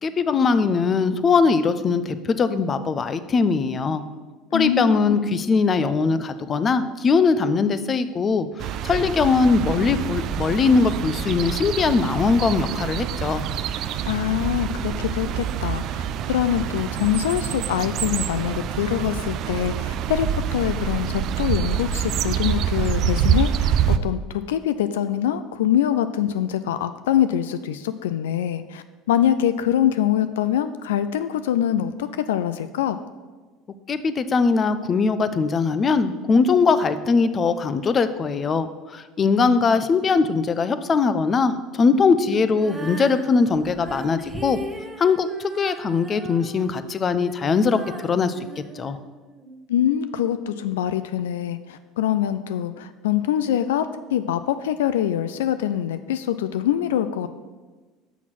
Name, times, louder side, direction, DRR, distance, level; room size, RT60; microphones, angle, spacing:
voice 1, 0.0-4.0 4.5-13.4 33.9-44.6 45.0-49.0, left 4 dB, 35° left, 12 dB, 0.5 m, -21 dB
voice 2, 4.5-5.4 14.1-24.2 24.5-33.0 49.7-57.3, left 10 dB, 85° left, 11 dB, 0.3 m, -24 dB
sound 1, 8.6-24.0, right 8 dB, 55° right, 0.4 m, -26 dB
Female singing, 42.5-49.6, right 1 dB, 10° right, 1.0 m, -38 dB
6.1 x 5.9 x 5.9 m, 1.3 s
hypercardioid pair, 85°, 0 cm